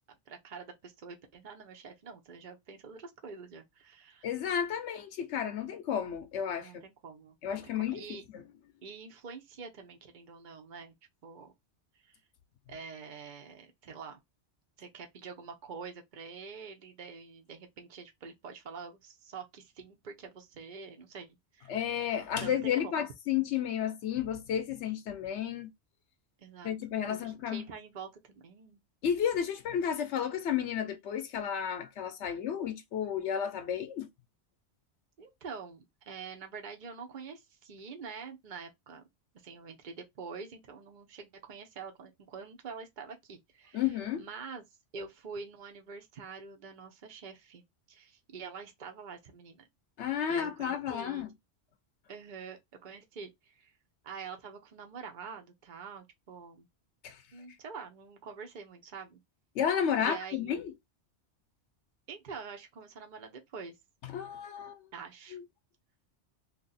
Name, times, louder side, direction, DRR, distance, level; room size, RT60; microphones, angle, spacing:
voice 1, 0.1-4.3 6.6-8.2 8.8-10.9 11.2-11.5 11.9-12.2 12.7-14.2 14.8-21.8 22.3-23.1 26.4-26.7 27.1-28.8 35.2-39.1 39.4-44.6 44.9-47.6 47.9-49.7 50.3-51.3 52.1-53.7 54.0-56.7 57.3-59.2 60.0-60.6 62.1-63.8 64.9-65.4, right 5 dB, 45° right, 0.9 m, -46 dB
voice 2, 4.2-6.7 7.4-8.0 8.3-8.4 21.7-25.7 26.6-27.6 29.0-34.1 43.7-44.3 50.0-51.3 57.0-57.2 59.5-60.7 64.1-64.8 65.3-65.4, left 9 dB, 85° left, 1.0 m, -32 dB
2.8 x 2.7 x 4.0 m
omnidirectional pair, 1.2 m